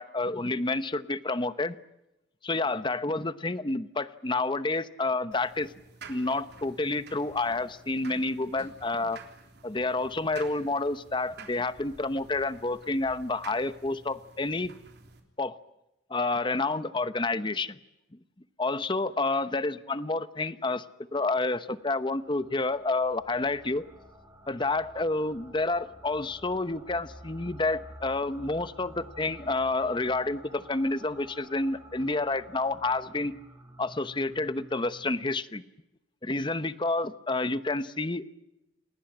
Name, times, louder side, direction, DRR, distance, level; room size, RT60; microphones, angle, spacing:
voice 1, 0.0-1.8 2.4-5.7 6.1-9.2 9.6-14.7 15.4-15.6 16.1-17.8 18.6-20.8 21.1-23.9 24.5-33.3 33.8-35.6 36.2-38.3, left 2 dB, 25° left, 13 dB, 0.9 m, -29 dB
sound 1, 5.3-15.2, right 4 dB, 60° right, 3.6 m, -51 dB
sound 2, 21.7-35.1, right 1 dB, 15° right, 5.4 m, -51 dB
29.0 x 20.0 x 8.8 m, 0.93 s
head